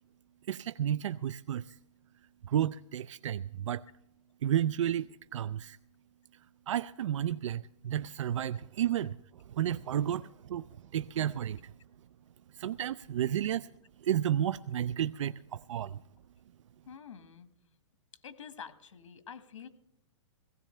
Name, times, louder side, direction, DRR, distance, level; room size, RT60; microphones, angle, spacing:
voice 1, 0.5-1.8 2.4-3.9 4.4-5.8 6.3-11.7 12.5-13.7 14.0-16.0, right 10 dB, 80° right, 0.4 m, -32 dB
voice 2, 16.9-17.5 18.2-19.7, left 7 dB, 85° left, 1.6 m, -47 dB
18.0 x 16.5 x 3.3 m
hypercardioid pair, 165°, 16 cm